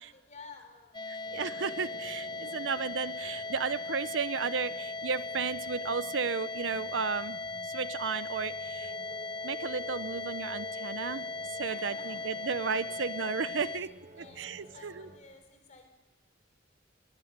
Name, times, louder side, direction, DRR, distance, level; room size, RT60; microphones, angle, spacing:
voice 1, 0.0-1.4 2.4-3.0 11.6-12.7 13.6-15.9, left 4 dB, 40° left, 6 dB, 3.9 m, -54 dB
sound 1, 0.9-13.8, left 3 dB, 25° left, 0.8 m, -38 dB
sound 2, 1.2-15.2, equal, 45° right, 4.1 m, -52 dB
voice 2, 1.3-7.4 7.7-8.9 9.4-11.3 11.6-13.9 14.2-15.1, right 5 dB, 85° right, 16 dB, 0.7 m, -34 dB
22.0 x 19.0 x 6.7 m, 1.1 s
head